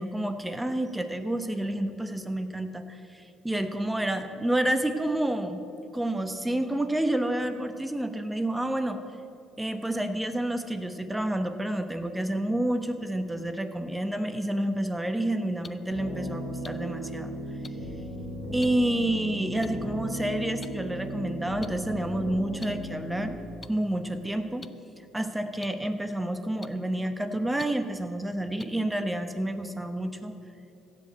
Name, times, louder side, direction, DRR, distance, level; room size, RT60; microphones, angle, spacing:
voice 1, 0.0-5.6 5.9-9.0 9.6-17.3 18.5-23.3 23.7-24.7 25.1-30.3, right 1 dB, 10° right, 8 dB, 1.1 m, -29 dB
sound 1, 15.6-15.7 16.6-16.7 17.6-17.7 18.6-18.7 19.6-19.7 20.6-20.7 21.6-21.7 22.6-22.7 23.6-23.7 24.6-24.7 25.6-25.7 26.6-26.7 27.6-27.7 28.6-28.7, left 4 dB, 30° left, 0.5 m, -42 dB
sound 2, 15.9-23.3, equal, 85° left, 2.7 m, -36 dB
15.5 x 5.3 x 8.0 m, 2.6 s
supercardioid pair, 70°, 0 cm